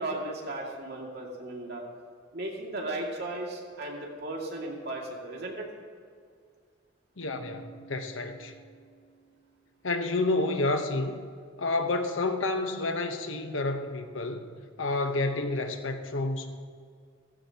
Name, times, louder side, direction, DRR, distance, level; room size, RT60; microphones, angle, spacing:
voice 1, 0.0-1.8 2.3-5.7, right 2 dB, 55° right, -1 dB, 2.4 m, -36 dB
voice 2, 7.2-8.5 9.8-11.2 11.6-14.5 14.8-16.5, left 2 dB, 75° left, 6 dB, 1.1 m, -29 dB
Keyboard (musical), 7.2-9.8, right 4 dB, 40° left, 1.6 m, -53 dB
16.5 x 15.0 x 3.0 m, 2.1 s
head